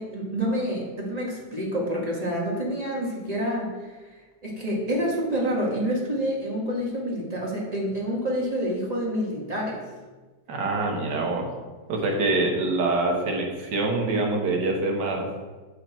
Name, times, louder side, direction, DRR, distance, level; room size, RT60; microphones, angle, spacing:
voice 1, 0.0-4.0 4.4-9.8, equal, 25° right, -4 dB, 1.5 m, -28 dB
voice 2, 10.5-11.5 11.9-15.3, right 2 dB, 75° right, 1 dB, 1.7 m, -25 dB
7.0 x 4.8 x 4.3 m, 1.3 s
omnidirectional pair, 2.0 m